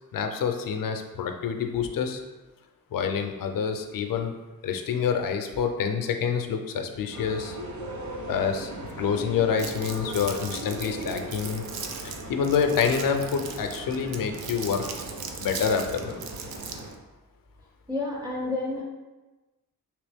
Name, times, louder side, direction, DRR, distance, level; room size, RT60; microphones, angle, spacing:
voice 1, 0.1-2.2 2.9-4.3 4.6-7.6 8.3-8.7 9.0-11.6 12.0-14.9 15.4-16.1, left 6 dB, 65° left, 5 dB, 0.5 m, -27 dB
sound 1, 7.1-16.9, right 1 dB, 50° right, 0.8 m, -38 dB
Crumpling crinkling, 9.6-16.9, right 6 dB, 80° right, 0.5 m, -39 dB
voice 2, 17.6-18.8, left 2 dB, 10° right, -4 dB, 0.4 m, -31 dB
3.3 x 3.0 x 3.4 m, 1.2 s
wide cardioid pair, 165°, 36 cm